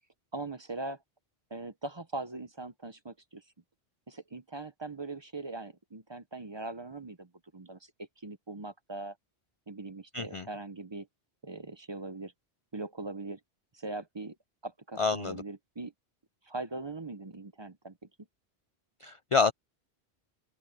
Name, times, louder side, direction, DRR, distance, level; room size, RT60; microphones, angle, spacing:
voice 1, 0.3-1.0 1.5-3.4 4.1-9.2 9.7-11.1 11.4-12.3 12.7-13.4 13.7-14.4 14.6-15.9 16.4-18.0, right 2 dB, 30° right, 0.8 m, -41 dB
voice 2, 10.1-10.4 15.0-15.4 19.0-19.5, left 4 dB, 50° left, 0.4 m, -27 dB
open air
omnidirectional pair, 1.1 m